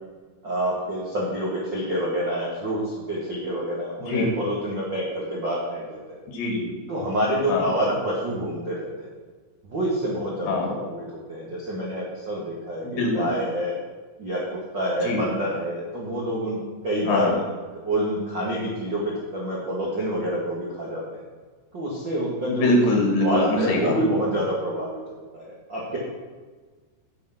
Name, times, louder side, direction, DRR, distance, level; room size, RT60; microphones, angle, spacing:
voice 1, 0.4-6.0 6.9-9.1 9.7-11.0 11.3-13.8 14.2-17.4 17.8-21.2 21.7-22.7 23.2-25.0 25.3-26.0, equal, 75° right, -5 dB, 1.0 m, -27 dB
voice 2, 6.3-6.7 7.5-7.7 10.5-10.7 12.8-13.3 15.0-15.2 17.1-17.3 22.5-24.0, left 2 dB, 65° left, 0 dB, 4.1 m, -23 dB
8.9 x 8.5 x 5.8 m, 1.4 s
omnidirectional pair, 5.4 m